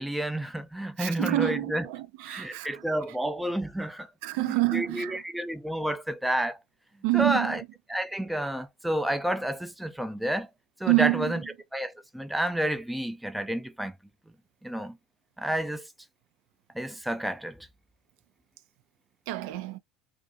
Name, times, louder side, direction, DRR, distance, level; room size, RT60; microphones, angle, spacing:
voice 1, 0.0-1.8 2.3-4.1 4.4-6.6 7.1-7.6 7.9-10.5 10.8-11.4 11.7-13.9 14.6-15.0 15.4-15.9 16.7-17.7, right 1 dB, 5° right, 0.4 m, -30 dB
voice 2, 1.0-2.8 4.2-5.2 7.0-7.6 10.9-11.4 19.3-19.8, right 20 dB, 70° right, 0.3 m, -27 dB
2.5 x 2.3 x 2.6 m
supercardioid pair, 100°, 0 cm